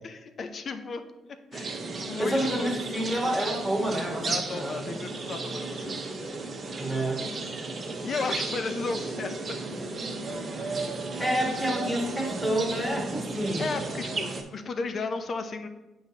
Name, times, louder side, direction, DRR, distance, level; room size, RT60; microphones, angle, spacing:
voice 1, 0.0-2.7 4.2-6.0 8.0-9.6 10.5-10.9 13.6-15.7, left 4 dB, 50° left, 8 dB, 0.6 m, -34 dB
sound 1, 1.5-14.4, right 3 dB, 40° right, 1.0 m, -34 dB
voice 2, 2.2-4.7 6.8-7.2 11.2-13.6, equal, ahead, -1 dB, 1.7 m, -28 dB
8.8 x 4.7 x 2.8 m, 1.0 s
cardioid pair, 90°, 0 cm